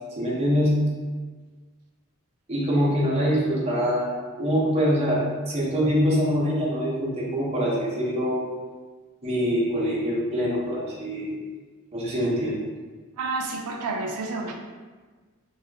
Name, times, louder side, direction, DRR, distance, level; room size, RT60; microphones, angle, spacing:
voice 1, 0.2-0.8 2.5-8.4 9.2-11.4 11.9-12.7, equal, 30° right, -6 dB, 0.7 m, -24 dB
voice 2, 13.2-14.5, right 3 dB, 85° right, 2 dB, 0.4 m, -29 dB
2.8 x 2.4 x 3.4 m, 1.4 s
head